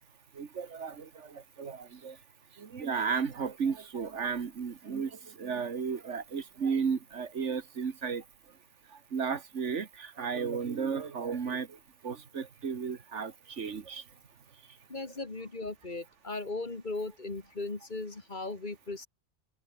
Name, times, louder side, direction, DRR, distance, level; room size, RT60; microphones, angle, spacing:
voice 1, 0.3-2.2 2.5-8.6 8.9-14.1 14.6-14.8, right 6 dB, 80° right, 1.8 m, -34 dB
voice 2, 14.9-19.1, left 3 dB, 40° left, 2.3 m, -37 dB
omnidirectional pair, 1.2 m